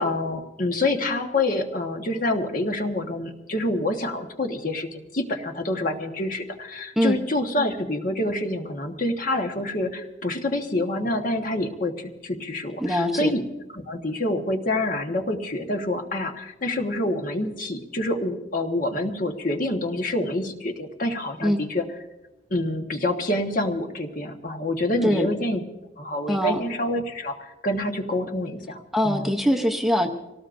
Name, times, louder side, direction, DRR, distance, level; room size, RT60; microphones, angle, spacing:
voice 1, 0.0-13.4 13.7-21.8 22.5-25.6 26.0-29.3, left 1 dB, 45° left, 4 dB, 1.3 m, -27 dB
voice 2, 12.8-13.3 21.4-21.6 25.0-25.3 26.3-26.6 28.9-30.1, equal, ahead, 3 dB, 0.7 m, -22 dB
25.5 x 18.0 x 2.6 m, 1.0 s
head